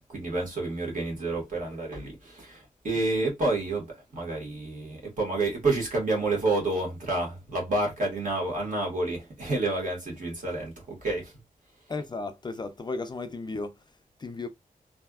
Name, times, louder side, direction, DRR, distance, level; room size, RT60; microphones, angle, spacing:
voice 1, 0.1-11.4, right 2 dB, 65° right, 1.7 m, -29 dB
voice 2, 11.9-14.5, left 3 dB, 30° left, 0.4 m, -35 dB
3.2 x 2.6 x 2.3 m
wide cardioid pair, 125°, 15 cm